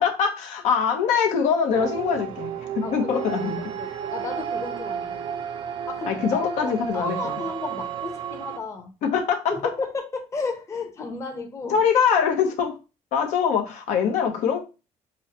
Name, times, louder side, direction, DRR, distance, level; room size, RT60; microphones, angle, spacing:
voice 1, 0.0-3.6 3.9-4.0 6.1-7.4 9.0-9.5 11.7-12.8 13.1-14.6, left 7 dB, 80° left, 0.9 m, -23 dB
sound 1, 1.7-8.6, right 8 dB, 45° right, 0.4 m, -32 dB
voice 2, 2.8-5.2 5.9-8.9 9.5-11.8, left 4 dB, 25° left, 0.8 m, -33 dB
6.1 x 2.2 x 2.8 m
cardioid pair, 155°, 12 cm